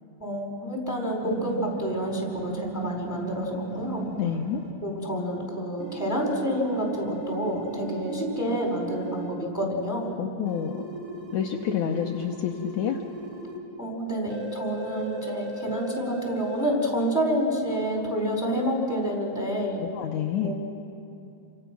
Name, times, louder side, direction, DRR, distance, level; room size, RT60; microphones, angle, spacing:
voice 1, 0.2-4.0 4.8-10.1 13.8-19.8 20.4-20.5, equal, 5° left, 0 dB, 4.0 m, -28 dB
sound 1, 1.2-4.7 5.8-9.3 10.5-13.6 14.3-16.7, right 4 dB, 80° right, 3.9 m, -36 dB
voice 2, 4.2-4.6 10.2-10.8 11.3-13.0 19.8-20.5, left 9 dB, 70° left, 2 dB, 2.2 m, -28 dB
29.5 x 25.0 x 6.1 m, 2.7 s
omnidirectional pair, 4.0 m